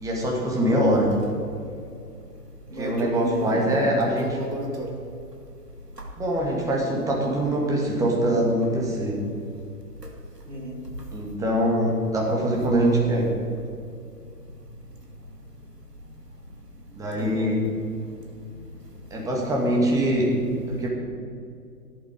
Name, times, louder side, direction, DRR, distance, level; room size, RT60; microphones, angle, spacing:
voice 1, 0.0-1.1 2.8-4.4 6.2-9.2 11.1-13.3 16.9-17.6 19.1-20.3 20.7-20.9, right 1 dB, 5° right, -1 dB, 1.5 m, -23 dB
voice 2, 2.7-4.9 10.5-10.8 17.1-17.6 20.6-20.9, right 1 dB, 80° right, 1 dB, 2.7 m, -33 dB
13.5 x 11.0 x 5.0 m, 2.4 s
figure-of-eight pair, 125°, 47 cm